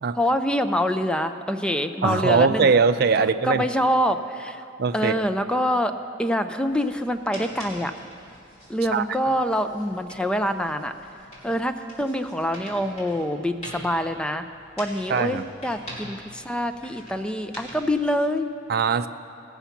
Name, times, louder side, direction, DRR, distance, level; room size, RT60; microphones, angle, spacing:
voice 1, 0.1-2.7 3.2-4.7 4.9-7.9 8.7-10.9 11.4-14.5 14.8-18.5, equal, 5° left, 8 dB, 0.4 m, -25 dB
voice 2, 2.0-3.6 4.8-5.1 8.9-9.0 15.1-15.4 18.7-19.1, right 5 dB, 55° right, 10 dB, 0.4 m, -21 dB
sound 1, 6.6-18.1, equal, 35° left, 3.3 m, -45 dB
19.0 x 7.0 x 5.8 m, 2.7 s
head